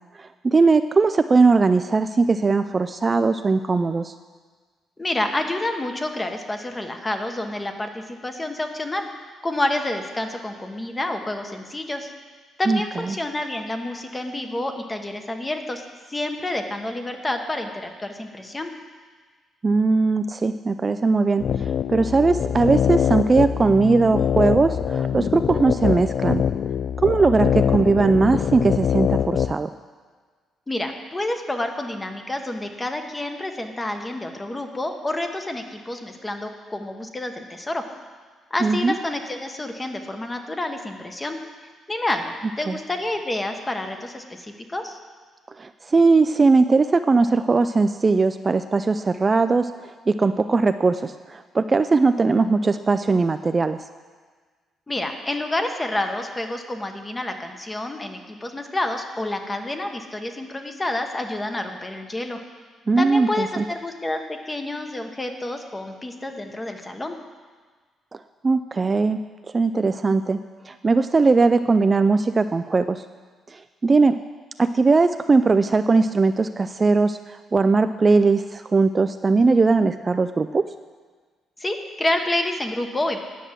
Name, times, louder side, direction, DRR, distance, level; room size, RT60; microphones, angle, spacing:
voice 1, 0.2-4.1 12.7-12.8 13.1-13.2 19.6-26.4 27.0-29.7 38.6-39.0 42.7-42.8 45.6-53.8 62.9-63.6 68.4-69.2 69.5-70.4 70.7-73.0 73.5-74.2 74.6-80.6, right 3 dB, 30° right, 10 dB, 0.3 m, -19 dB
voice 2, 5.0-9.1 9.4-12.1 12.6-15.8 16.1-18.7 30.7-37.8 38.5-41.4 41.9-45.0 54.9-62.4 63.0-67.2 81.6-83.2, left 1 dB, 20° left, 5 dB, 1.1 m, -28 dB
sound 1, 21.4-29.5, left 8 dB, 60° left, 0.3 m, -23 dB
10.0 x 6.1 x 7.4 m, 1.5 s
cardioid pair, 90°, 0 cm